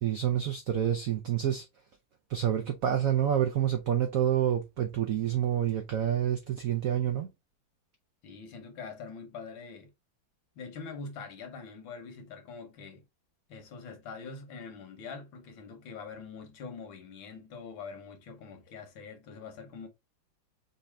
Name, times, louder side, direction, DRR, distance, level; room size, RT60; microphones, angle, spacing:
voice 1, 0.0-1.6 2.3-7.3, right 10 dB, 75° right, 0.8 m, -28 dB
voice 2, 8.2-9.9 10.6-13.0 13.5-19.9, left 5 dB, 80° left, 1.8 m, -44 dB
5.4 x 2.7 x 3.4 m
omnidirectional pair, 2.2 m